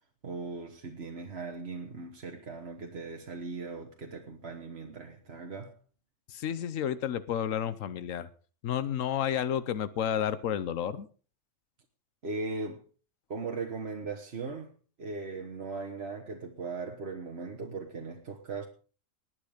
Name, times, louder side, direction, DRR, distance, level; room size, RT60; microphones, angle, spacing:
voice 1, 0.2-5.8 12.2-12.8 13.3-14.7 15.0-18.7, right 4 dB, 55° right, 1.6 m, -38 dB
voice 2, 6.3-8.3 8.6-11.1, left 9 dB, 90° left, 1.2 m, -31 dB
20.0 x 9.6 x 5.0 m
omnidirectional pair, 1.3 m